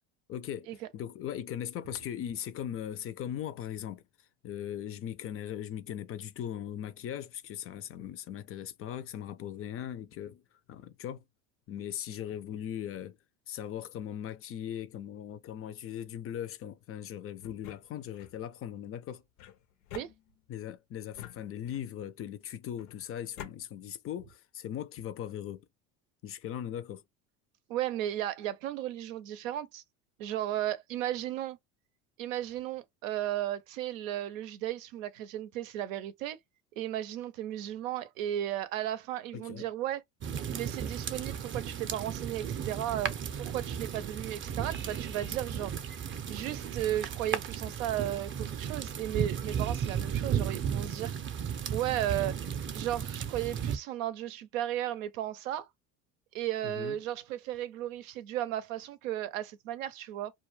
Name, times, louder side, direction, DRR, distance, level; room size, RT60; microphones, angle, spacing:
voice 1, 0.3-4.0 4.4-10.4 10.7-11.2 11.7-13.2 13.5-19.2 20.5-25.7 26.2-27.0 39.3-39.7 56.6-57.0, left 10 dB, 35° left, 0.4 m, -39 dB
sound 1, 17.4-18.4 19.4-20.6 21.1-22.0 22.8-23.6, left 11 dB, 75° left, 0.7 m, -48 dB
voice 2, 27.7-29.8 30.2-31.6 32.2-36.4 36.8-40.0 40.5-45.7 46.3-51.1 51.7-52.4 52.7-55.7 56.3-60.3, right 12 dB, 90° right, 0.6 m, -35 dB
sound 2, 40.2-53.8, right 8 dB, 30° right, 0.5 m, -35 dB
2.3 x 2.2 x 3.1 m
supercardioid pair, 85°, 38 cm